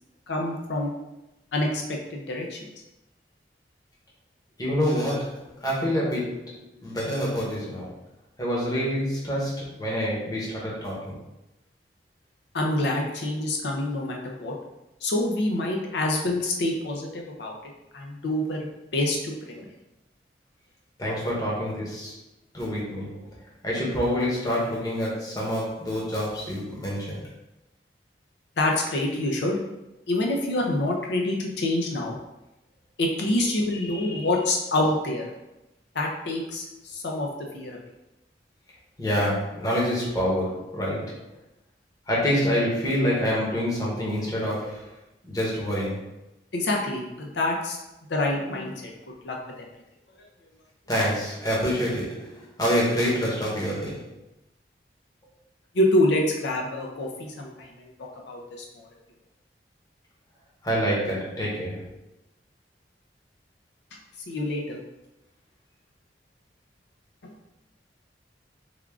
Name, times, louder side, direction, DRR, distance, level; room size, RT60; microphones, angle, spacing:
voice 1, 0.3-0.9 1.5-2.6 12.5-14.5 15.0-17.5 17.9-18.7 18.9-19.7 28.6-29.6 30.1-32.2 33.0-35.3 35.9-37.8 46.5-47.8 48.1-48.8 49.2-49.6 55.7-58.9 64.3-64.8, left 1 dB, 70° left, 0 dB, 0.5 m, -26 dB
voice 2, 4.6-7.9 8.4-11.2 21.0-22.2 22.5-23.3 23.6-27.3 33.7-34.3 39.0-41.3 42.1-44.9 45.2-46.0 50.9-54.1 60.6-62.0, equal, 20° left, -5 dB, 0.9 m, -27 dB
3.5 x 2.4 x 3.4 m, 0.95 s
head